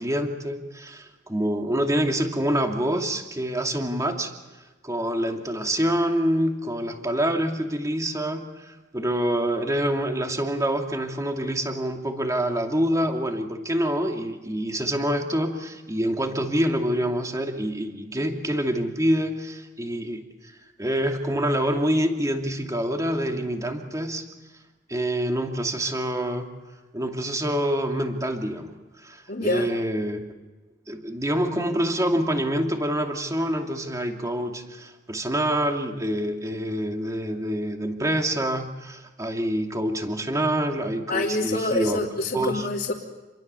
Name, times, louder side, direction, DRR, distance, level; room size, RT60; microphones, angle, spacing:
voice 1, 0.0-4.3 4.8-20.5 20.8-24.3 24.9-26.5 26.9-28.7 29.0-30.2 30.9-42.0 42.3-42.6, equal, 20° right, 3 dB, 2.7 m, -26 dB
voice 2, 29.3-29.7 41.1-42.9, left 2 dB, 55° left, -5 dB, 3.1 m, -26 dB
28.5 x 23.0 x 7.0 m, 1.2 s
head